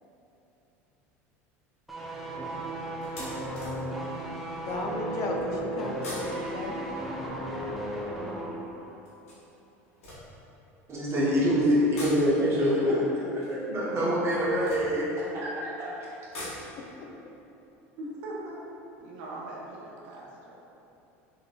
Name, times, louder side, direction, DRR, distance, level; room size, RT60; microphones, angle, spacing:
sound 1, 1.5-1.7 2.1-2.2 3.0-4.7 5.8-8.2 9.0-11.0 11.8-15.5 16.0-19.0 19.3-19.4 19.7-19.8, left 1 dB, 90° left, 1.2 m, -45 dB
sound 2, 1.9-8.6 8.8-9.0, right 1 dB, ahead, 0.7 m, -35 dB
voice 1, 4.5-6.9 17.0-17.1, left 2 dB, 50° left, 0 dB, 0.5 m, -34 dB
voice 2, 10.9-16.1, equal, 40° right, -7 dB, 1.2 m, -26 dB
voice 3, 18.0-18.7 19.0-20.6, right 1 dB, 70° right, -5 dB, 0.9 m, -40 dB
3.8 x 3.7 x 2.5 m, 3.0 s
hypercardioid pair, 95°, 7 cm